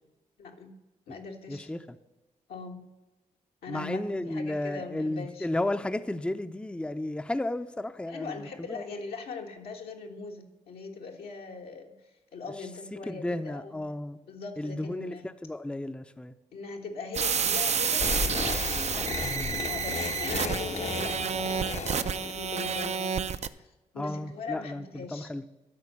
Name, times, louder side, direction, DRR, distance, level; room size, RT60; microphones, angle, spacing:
voice 1, 0.4-0.7 1.1-1.7 2.5-2.9 3.6-5.5 8.1-13.8 14.2-15.3 16.5-18.1 18.9-25.3, left 4 dB, 80° left, 1 dB, 1.5 m, -41 dB
voice 2, 1.5-1.8 3.7-8.8 13.1-14.2 14.6-16.3 19.2-19.6 24.0-24.8 25.1-25.4, left 1 dB, 5° left, 10 dB, 0.6 m, -33 dB
sound 1, 17.1-23.5, right 6 dB, 45° right, 0.5 m, -30 dB
sound 2, 18.0-23.2, left 4 dB, 45° left, 0.8 m, -34 dB
12.0 x 4.4 x 7.2 m, 1.1 s
supercardioid pair, 45°, 15 cm